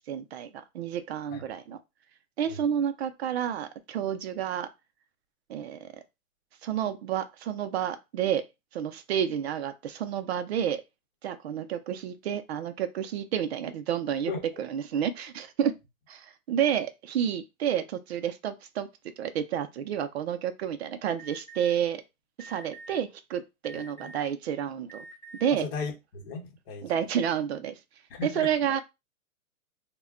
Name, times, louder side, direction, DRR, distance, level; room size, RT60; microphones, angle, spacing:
voice 1, 0.1-1.8 2.4-4.7 5.5-5.9 6.6-8.4 8.7-10.8 11.2-14.3 14.6-15.8 16.1-18.9 19.2-22.0 22.4-25.1 25.4-25.7 26.8-27.8 28.2-28.8, right 9 dB, 50° right, 0.4 m, -30 dB
Alarm, 21.2-21.7 22.4-23.0 23.6-24.3 24.9-25.5, right 3 dB, 10° left, 0.6 m, -46 dB
voice 2, 23.7-24.1 25.6-26.9 28.1-28.5, left 4 dB, 40° left, 1.1 m, -36 dB
2.2 x 2.1 x 3.6 m
hypercardioid pair, 160°, 43 cm